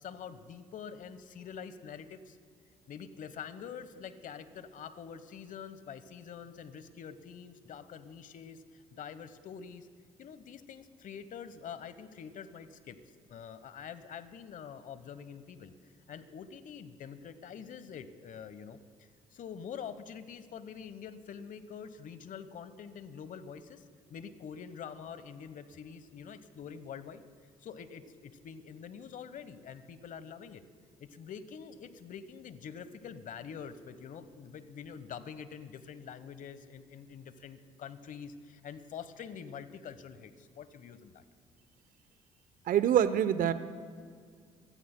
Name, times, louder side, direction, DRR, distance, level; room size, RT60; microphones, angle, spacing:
voice 1, 0.0-2.4 2.9-9.9 10.2-13.0 13.3-23.8 24.1-27.2 27.6-30.6 31.0-41.2, left 7 dB, 55° left, 13 dB, 1.1 m, -46 dB
voice 2, 42.7-43.5, right 10 dB, 60° right, 13 dB, 0.8 m, -25 dB
26.0 x 16.5 x 2.2 m, 2.1 s
hypercardioid pair, 55°, 16 cm